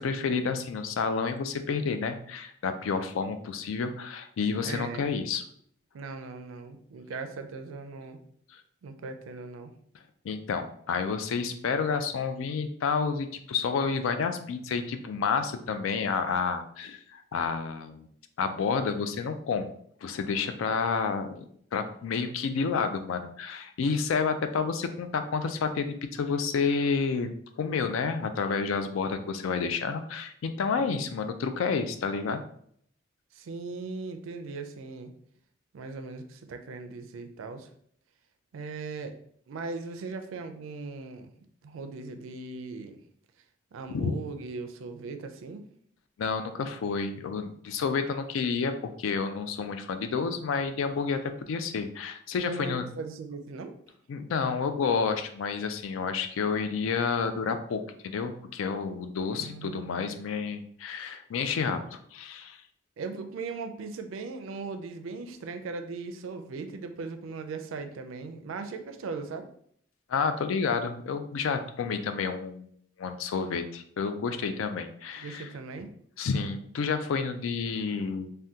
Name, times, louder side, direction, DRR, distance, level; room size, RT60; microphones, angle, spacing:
voice 1, 0.0-5.4 10.2-18.1 18.4-19.7 20.0-21.4 21.7-32.4 43.9-44.1 46.2-51.2 51.5-52.9 54.1-62.6 70.1-72.7 73.0-75.5 76.2-78.3, left 5 dB, 90° left, 9 dB, 0.4 m, -30 dB
voice 2, 4.6-5.1 5.9-8.2 8.8-9.7 30.8-31.2 33.3-35.1 35.7-37.7 38.5-39.1 39.5-41.3 41.6-43.0 43.7-45.7 52.4-53.7 59.3-60.2 63.0-69.5 75.2-75.9, right 4 dB, 90° right, 7 dB, 0.4 m, -39 dB
3.5 x 2.2 x 2.7 m, 0.66 s
head